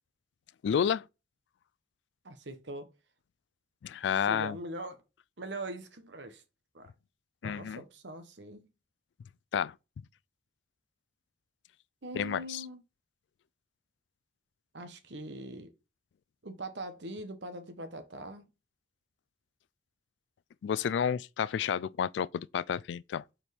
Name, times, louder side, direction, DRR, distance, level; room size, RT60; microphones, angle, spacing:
voice 1, 0.6-1.0 3.8-4.6 7.4-7.8 9.5-9.7 12.1-12.6 20.6-23.2, left 8 dB, 70° left, 0.3 m, -30 dB
voice 2, 2.2-2.9 4.0-5.0 5.4-6.4 6.7-6.9 7.4-8.7 12.0-12.8 14.7-15.7 16.4-18.5, right 1 dB, 70° right, 1.1 m, -42 dB
6.6 x 4.5 x 3.5 m
head